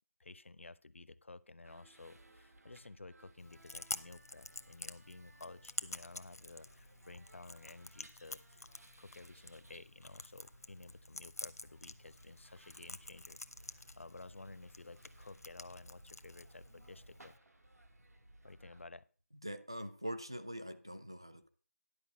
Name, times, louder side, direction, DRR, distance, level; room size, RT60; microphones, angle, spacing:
voice 1, 0.2-17.3 18.4-19.1, left 3 dB, 55° left, 0.5 m, -54 dB
sound 1, 1.6-18.9, right 1 dB, 85° right, 1.7 m, -62 dB
Chewing mastication, 3.4-17.4, left 2 dB, 85° left, 0.9 m, -49 dB
voice 2, 19.4-21.5, equal, 20° right, 0.3 m, -43 dB
10.5 x 5.0 x 6.1 m
figure-of-eight pair, 175°, 8 cm